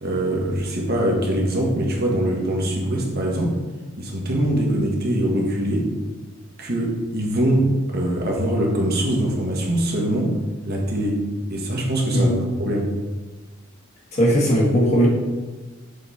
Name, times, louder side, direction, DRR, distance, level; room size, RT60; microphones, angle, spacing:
voice 1, 0.0-3.5 4.0-5.9 6.6-10.3 10.6-11.2 11.5-12.3 12.6-12.9, right 1 dB, 45° right, -1 dB, 1.2 m, -22 dB
voice 2, 14.1-15.1, equal, 35° left, -4 dB, 1.3 m, -18 dB
6.8 x 3.9 x 4.1 m, 1.3 s
head